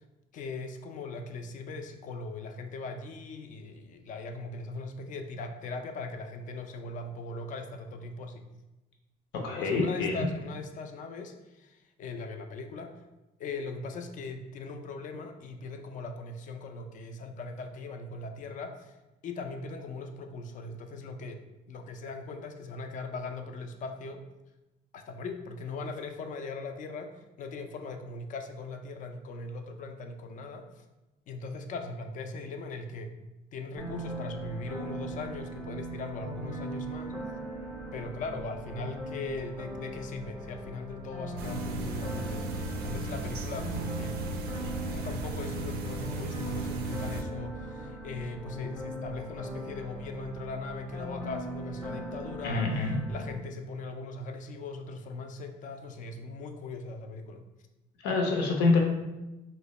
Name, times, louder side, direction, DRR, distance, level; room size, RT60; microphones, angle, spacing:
voice 1, 0.3-8.4 9.6-12.9 13.4-18.9 19.2-21.4 21.7-24.2 24.9-30.8 31.3-33.1 33.5-37.2 37.9-44.2 44.9-52.7 53.1-57.4, left 3 dB, 50° left, 5 dB, 0.4 m, -39 dB
voice 2, 9.3-10.3 52.4-53.0 58.0-58.8, left 3 dB, 85° left, 1 dB, 0.7 m, -26 dB
sound 1, 33.8-53.4, right 1 dB, 5° right, 0.6 m, -39 dB
sound 2, 41.4-47.2, right 2 dB, 70° right, 0.4 m, -36 dB
2.8 x 2.1 x 3.9 m, 1.0 s
cardioid pair, 110°, 17 cm